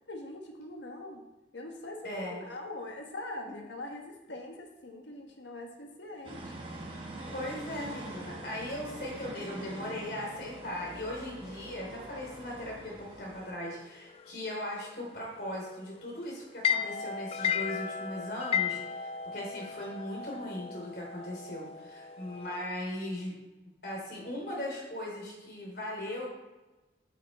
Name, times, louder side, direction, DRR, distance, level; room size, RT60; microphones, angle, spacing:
voice 1, 0.1-1.2 1.5-6.5, left 2 dB, 80° left, 2 dB, 1.6 m, -42 dB
voice 2, 2.0-2.4 7.3-23.3 23.8-26.3, left 1 dB, 55° left, -2 dB, 3.7 m, -38 dB
sound 1, 6.2-13.5, right 2 dB, 30° right, 1.5 m, -44 dB
sound 2, 7.3-22.7, left 7 dB, 30° left, 0.3 m, -38 dB
8.9 x 7.4 x 4.4 m, 1.1 s
head